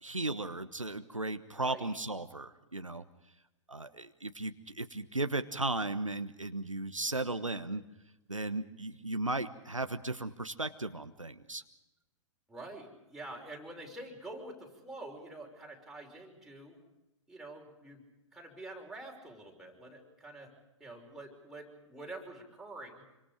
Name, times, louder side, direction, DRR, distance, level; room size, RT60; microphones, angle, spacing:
voice 1, 0.0-3.0 3.7-7.8 8.3-11.6, right 2 dB, 90° right, 9 dB, 1.2 m, -36 dB
voice 2, 1.6-2.0 12.5-16.8 17.3-18.1 18.3-20.5 20.8-23.0, right 2 dB, ahead, -1 dB, 5.7 m, -47 dB
27.0 x 25.0 x 5.1 m, 0.97 s
figure-of-eight pair, 110°, 16 cm